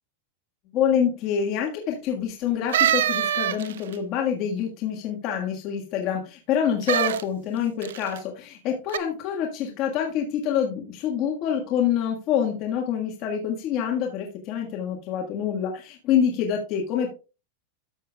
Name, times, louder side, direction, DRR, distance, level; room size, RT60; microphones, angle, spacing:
voice 1, 0.7-17.1, left 8 dB, 35° left, 1 dB, 1.5 m, -26 dB
sound 1, 2.7-3.9 6.8-7.2 7.8-8.2 8.9-9.0, right 11 dB, 80° right, 0.5 m, -23 dB
13.0 x 6.7 x 2.3 m, 0.31 s
supercardioid pair, 160°, 0 cm